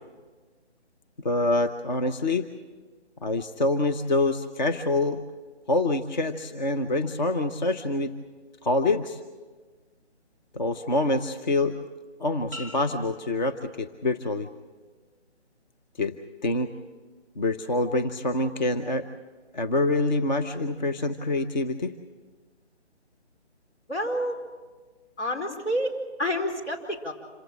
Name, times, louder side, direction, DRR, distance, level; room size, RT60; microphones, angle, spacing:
voice 1, 1.2-2.5 3.2-5.2 5.7-8.1 8.6-9.2 10.5-11.8 12.2-14.5 16.0-16.1 16.4-16.7 17.4-19.1 19.5-21.9, left 2 dB, 40° left, 7 dB, 0.9 m, -26 dB
hi tube, 12.5-14.3 14.8-15.2, equal, 15° left, 2.2 m, -46 dB
voice 2, 23.9-24.4 25.2-27.1, equal, 80° left, 3 dB, 4.9 m, -29 dB
27.0 x 17.0 x 7.4 m, 1.4 s
figure-of-eight pair, 160°, 34 cm